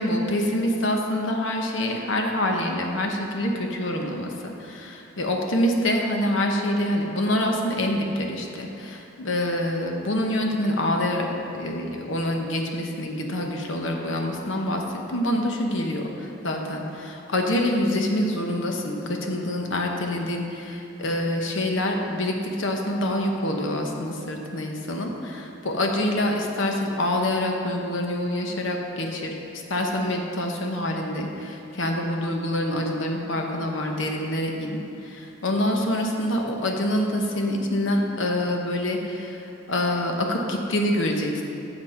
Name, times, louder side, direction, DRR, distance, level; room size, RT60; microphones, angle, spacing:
voice 1, 0.0-29.3 29.7-41.4, left 1 dB, 70° left, 2 dB, 0.9 m, -26 dB
7.8 x 7.8 x 4.3 m, 2.8 s
head